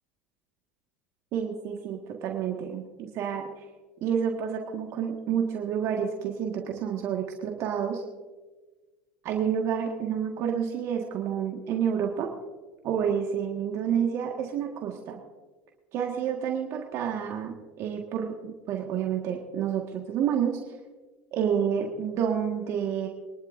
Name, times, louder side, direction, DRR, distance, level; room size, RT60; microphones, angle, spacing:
voice 1, 1.3-3.7 4.0-8.0 9.2-12.3 12.8-15.2 15.9-20.6 21.3-23.1, right 8 dB, 55° right, 1 dB, 1.7 m, -29 dB
24.5 x 11.5 x 2.6 m, 1.3 s
hypercardioid pair, 90°, 6 cm